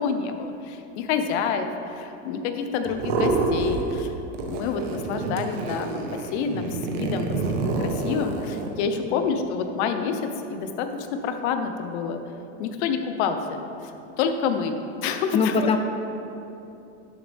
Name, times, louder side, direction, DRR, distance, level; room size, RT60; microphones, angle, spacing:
voice 1, 0.0-4.1 4.4-10.2 10.5-12.2 12.6-13.9 14.2-14.7 15.0-15.7, left 6 dB, 65° left, 7 dB, 1.0 m, -28 dB
sound 1, 2.8-4.1 4.3-8.7, right 3 dB, 80° right, 1.3 m, -27 dB
voice 2, 15.3-15.8, left 5 dB, 15° left, 7 dB, 0.4 m, -22 dB
12.0 x 7.3 x 3.5 m, 2.9 s
supercardioid pair, 140°, 36 cm